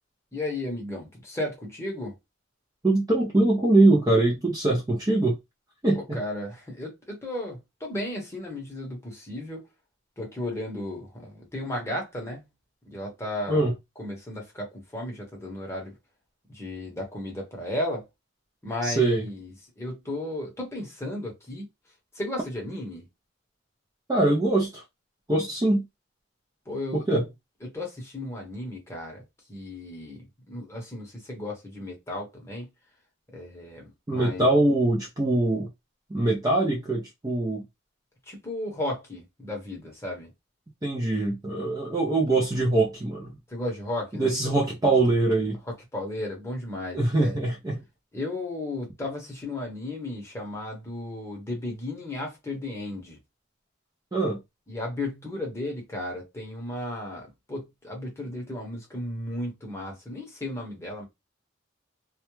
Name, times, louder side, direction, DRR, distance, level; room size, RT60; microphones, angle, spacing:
voice 1, 0.3-2.2 5.9-9.6 10.2-12.4 12.9-13.6 14.0-15.9 16.5-18.1 18.6-21.7 22.1-23.1 26.7-27.2 27.6-29.2 29.5-32.7 33.3-34.6 38.3-40.3 43.5-44.6 45.7-47.5 48.1-53.2 54.7-61.1, left 1 dB, 15° left, 0.9 m, -34 dB
voice 2, 2.8-5.4 5.8-6.2 13.5-13.7 18.8-19.2 24.1-24.8 25.3-25.8 26.9-27.2 34.1-35.7 36.1-37.6 40.8-43.3 44.1-45.6 46.9-47.8 54.1-54.4, right 2 dB, 20° right, 0.4 m, -23 dB
2.3 x 2.1 x 3.0 m
head